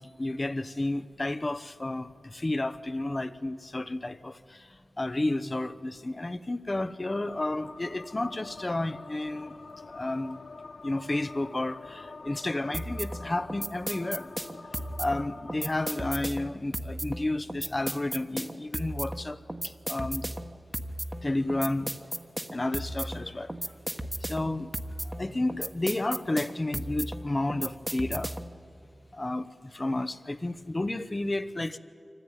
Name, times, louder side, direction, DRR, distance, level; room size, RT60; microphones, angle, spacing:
voice 1, 0.0-9.6 9.9-10.4 10.8-14.3 15.0-20.3 21.2-21.9 22.5-23.5 24.2-24.7 25.0-28.4 29.1-31.8, left 2 dB, 35° left, 0.8 m, -31 dB
sound 1, 7.2-16.1, left 3 dB, 60° left, 0.6 m, -46 dB
sound 2, 12.7-28.6, right 1 dB, 20° right, 1.3 m, -36 dB
25.0 x 15.0 x 9.2 m
cardioid pair, 45°, 0 cm